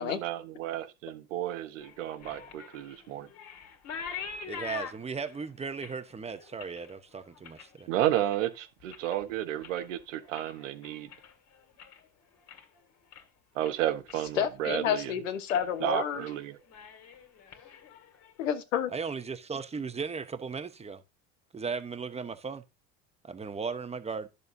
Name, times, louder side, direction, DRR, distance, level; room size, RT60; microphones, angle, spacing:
voice 1, 0.0-3.3 7.9-11.1 13.5-15.1 15.8-16.6, right 12 dB, 85° right, 1.3 m, -32 dB
sound 1, 1.8-8.5 8.8-9.3 9.6-12.0 12.3-12.8 13.1-13.2 13.6-14.4 14.7-15.1 15.5-15.7 16.0-16.4 16.6-18.5, left 6 dB, 45° left, 2.1 m, -45 dB
voice 2, 4.4-7.9 18.9-21.0 21.5-22.6 23.2-24.3, right 5 dB, 15° right, 1.0 m, -36 dB
voice 3, 14.4-16.3 18.4-18.9, left 9 dB, 90° left, 1.3 m, -29 dB
10.5 x 7.0 x 2.7 m
supercardioid pair, 90°, 37 cm